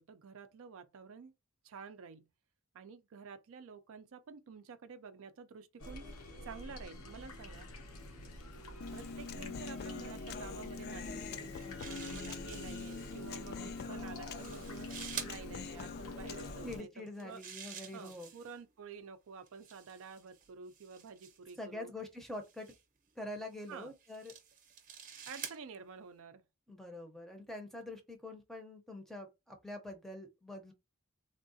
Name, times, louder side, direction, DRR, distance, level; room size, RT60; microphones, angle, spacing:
voice 1, 0.0-1.3 1.6-2.3 2.7-6.1 6.4-7.7 8.9-11.6 11.9-14.9 15.2-17.4 17.9-21.9 23.7-23.9 25.3-26.4, right 5 dB, 65° right, 0.4 m, -50 dB
sound 1, 5.8-16.8, left 1 dB, 80° left, 0.9 m, -48 dB
Human voice, 8.8-16.8, left 5 dB, 50° left, 0.4 m, -44 dB
sound 2, 11.3-13.3 14.1-15.4 17.0-18.6 19.5-21.6 22.4-22.8 23.6-25.6, right 7 dB, 40° right, 0.8 m, -48 dB
voice 2, 16.6-18.3 21.6-22.7 23.2-24.3 26.7-30.7, left 1 dB, ahead, 0.6 m, -45 dB
3.6 x 2.3 x 2.6 m
head